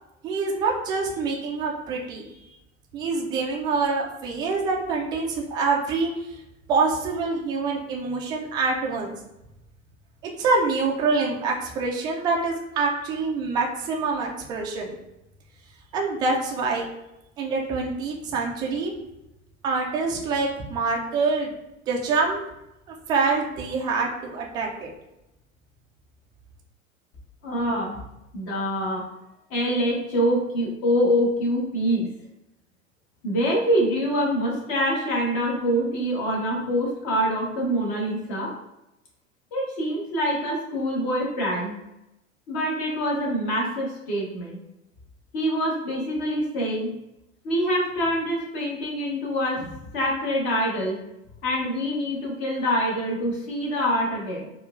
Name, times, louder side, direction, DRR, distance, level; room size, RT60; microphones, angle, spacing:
voice 1, 0.2-2.5 2.9-6.4 6.7-9.1 10.4-15.0 15.9-16.9 17.4-18.9 19.6-21.5 21.9-22.4 22.9-24.9, right 4 dB, 10° right, 0 dB, 0.3 m, -26 dB
voice 2, 27.4-28.0 28.3-29.0 29.5-32.1 33.2-38.5 39.5-41.8 42.5-44.6 45.3-46.9 47.4-51.0 51.4-54.5, equal, 45° left, -2 dB, 1.4 m, -25 dB
4.4 x 2.4 x 2.4 m, 0.90 s
figure-of-eight pair, 90°, 40 cm